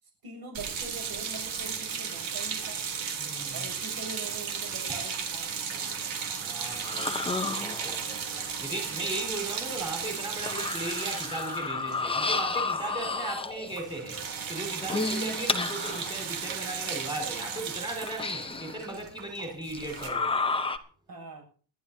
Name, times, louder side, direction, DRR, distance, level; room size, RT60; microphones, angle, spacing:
voice 1, 0.0-2.8 3.5-6.1 21.1-21.4, right 3 dB, 45° right, 7.5 m, -44 dB
sound 1, 0.5-12.9 13.2-13.4 13.7-20.1, right 6 dB, 70° right, 3.5 m, -35 dB
voice 2, 3.2-3.7 4.9-5.0 6.4-8.2 8.6-14.2 14.5-20.3, right 1 dB, 10° right, 5.1 m, -37 dB
sound 2, 6.7-8.2 9.5-9.6 10.2-13.8 14.7-16.4 16.9-17.0 18.0-18.9 19.7-20.8, left 3 dB, 10° left, 0.8 m, -31 dB
26.0 x 12.0 x 2.8 m
cardioid pair, 170°, 49 cm